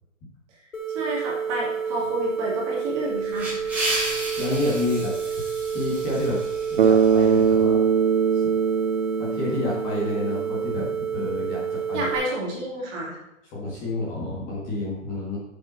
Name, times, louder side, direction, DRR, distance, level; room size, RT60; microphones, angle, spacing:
sound 1, 0.7-12.2, right 7 dB, 75° left, 2.1 m, -29 dB
voice 1, 0.9-3.7 11.9-13.2, right 1 dB, 25° right, -3 dB, 2.7 m, -30 dB
sound 2, 3.0-7.6, right 1 dB, 5° right, 2.8 m, -33 dB
voice 2, 4.4-5.1 5.7-6.4 6.7-7.8 8.3-8.4 9.2-12.1 13.5-15.4, left 2 dB, 15° left, -5 dB, 1.7 m, -29 dB
Bass guitar, 6.8-10.8, right 6 dB, 50° right, 0.6 m, -22 dB
8.5 x 7.2 x 4.2 m, 0.93 s
hypercardioid pair, 165°, 39 cm